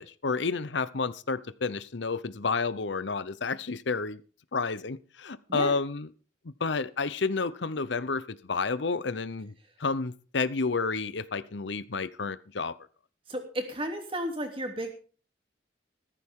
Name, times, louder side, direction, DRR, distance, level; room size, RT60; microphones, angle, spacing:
voice 1, 0.0-4.2 4.5-6.1 6.4-9.5 9.8-12.7, left 4 dB, 75° left, 16 dB, 0.8 m, -30 dB
voice 2, 13.3-14.9, right 1 dB, 30° right, 4 dB, 3.0 m, -33 dB
14.5 x 14.5 x 3.7 m, 0.38 s
head